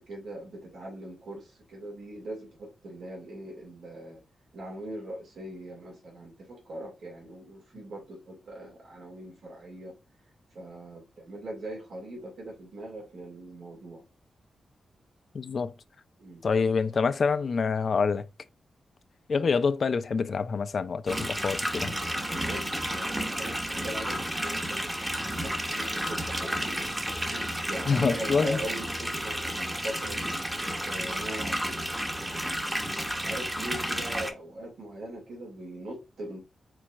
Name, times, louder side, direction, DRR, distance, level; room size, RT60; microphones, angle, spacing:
voice 1, 0.1-4.2 4.5-10.0 10.5-14.0 16.2-16.4 22.4-26.8 27.3-30.4 30.9-32.0 33.1-36.4, right 1 dB, 80° right, 2.2 m, -41 dB
voice 2, 15.3-15.7 16.4-18.2 19.3-21.9 27.9-28.6, left 5 dB, 55° left, 0.4 m, -26 dB
sound 1, 21.1-34.3, equal, 10° right, 0.9 m, -32 dB
4.5 x 4.2 x 2.4 m
wide cardioid pair, 105°, 0 cm